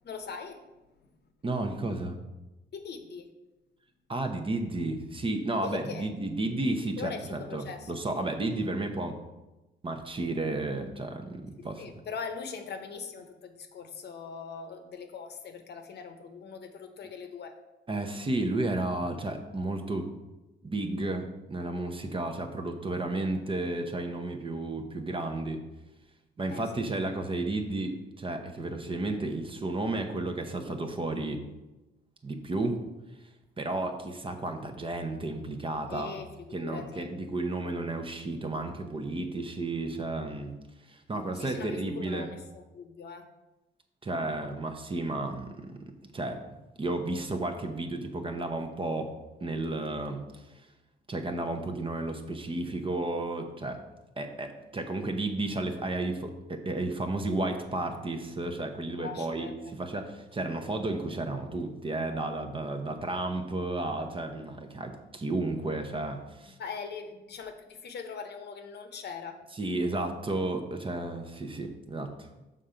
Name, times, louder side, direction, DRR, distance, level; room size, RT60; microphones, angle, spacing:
voice 1, 0.0-0.6 2.7-3.3 5.6-6.1 7.0-7.9 11.6-17.6 26.5-26.8 35.9-37.1 41.3-43.3 59.0-59.8 66.6-69.4, left 5 dB, 55° left, 6 dB, 0.9 m, -41 dB
voice 2, 1.4-2.2 4.1-9.2 9.8-11.8 17.9-20.1 20.6-25.6 26.4-31.4 32.2-32.8 33.6-36.2 36.5-40.5 40.9-42.3 44.0-45.8 46.1-49.1 49.4-50.2 51.1-53.8 54.2-59.5 59.8-66.5 69.6-72.3, right 2 dB, 25° right, 5 dB, 0.8 m, -32 dB
6.5 x 3.8 x 5.5 m, 1.0 s
cardioid pair, 90°, 20 cm